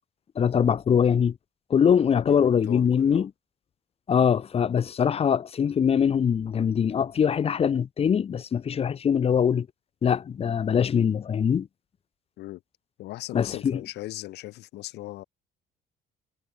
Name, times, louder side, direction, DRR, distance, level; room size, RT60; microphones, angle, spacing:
voice 1, 0.3-1.4 1.7-3.3 4.1-9.7 10.0-11.7 13.3-13.8, left 7 dB, 35° left, 0.9 m, -23 dB
voice 2, 2.2-3.2 12.4-12.6 13.0-15.2, left 17 dB, 80° left, 4.4 m, -38 dB
cardioid pair, 110°, 17 cm